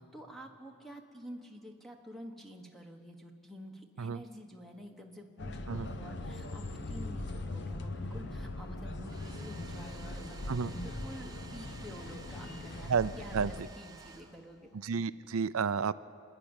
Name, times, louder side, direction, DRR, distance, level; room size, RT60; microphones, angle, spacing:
voice 1, 0.0-12.9 13.2-14.7, equal, ahead, 2 dB, 1.2 m, -49 dB
sound 1, 5.4-13.6, left 2 dB, 50° left, 0.9 m, -40 dB
Domestic sounds home sounds, 8.9-14.8, right 4 dB, 15° right, 0.8 m, -54 dB
voice 2, 12.9-13.5 14.8-15.9, right 5 dB, 70° right, 16 dB, 0.5 m, -31 dB
27.5 x 11.0 x 8.9 m, 2.5 s
head